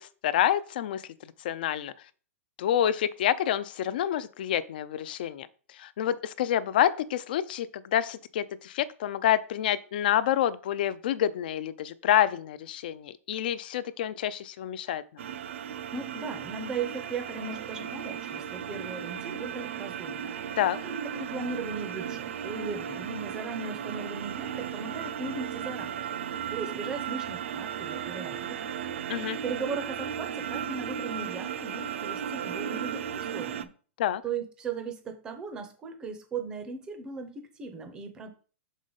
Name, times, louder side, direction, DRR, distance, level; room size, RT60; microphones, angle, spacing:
voice 1, 0.0-2.1 2.6-15.0 20.6-20.8 29.1-29.4 34.0-34.2, left 11 dB, 40° left, 16 dB, 0.4 m, -28 dB
sound 1, 15.2-33.7, right 9 dB, 55° right, 0.6 m, -35 dB
voice 2, 15.9-20.3 20.8-26.1 26.5-28.7 29.4-33.7 34.2-38.3, right 4 dB, 10° right, 7 dB, 0.6 m, -37 dB
6.4 x 5.0 x 3.9 m, 0.40 s
hypercardioid pair, 180°, 8 cm